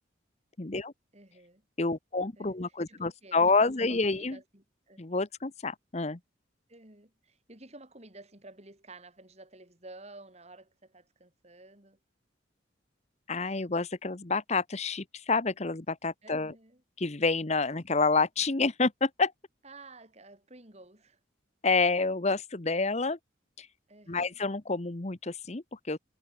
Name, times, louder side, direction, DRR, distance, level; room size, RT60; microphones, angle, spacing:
voice 1, 0.6-0.9 1.8-4.4 5.0-6.2 13.3-16.5 17.0-19.3 21.6-23.2 23.6-23.7 24.1-26.0, left 3 dB, 35° left, 1.0 m, -28 dB
voice 2, 1.1-1.6 2.4-5.1 6.7-12.0 16.2-16.8 19.6-21.2 23.9-24.4, right 2 dB, 35° right, 4.5 m, -52 dB
head